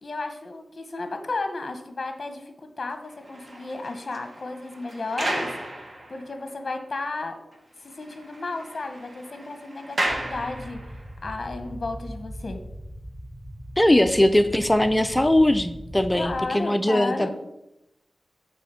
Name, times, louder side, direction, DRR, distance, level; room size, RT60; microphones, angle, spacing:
voice 1, 0.0-5.5 6.1-7.4 8.0-10.8 11.2-12.6 16.1-17.3, left 3 dB, 45° left, 7 dB, 1.0 m, -33 dB
sound 1, 3.0-6.5 7.0-7.1 7.5-7.6 7.9-11.1, right 1 dB, 40° right, 1.2 m, -34 dB
sound 2, 10.1-16.4, equal, 20° right, 2.9 m, -40 dB
voice 2, 13.8-17.3, left 1 dB, 10° left, 10 dB, 0.4 m, -20 dB
9.2 x 3.6 x 6.8 m, 0.90 s
wide cardioid pair, 120°, 0 cm